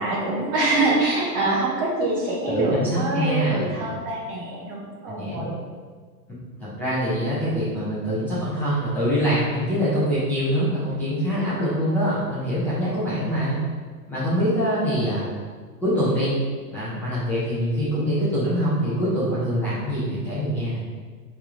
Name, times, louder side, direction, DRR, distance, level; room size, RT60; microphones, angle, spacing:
voice 1, 0.0-5.6, right 2 dB, 25° right, -4 dB, 1.1 m, -25 dB
voice 2, 2.5-3.9 5.1-5.5 6.6-13.6 14.1-15.2 15.8-16.3 16.7-20.8, equal, 5° left, -12 dB, 0.9 m, -24 dB
7.9 x 3.6 x 3.7 m, 1.5 s
hypercardioid pair, 155°, 48 cm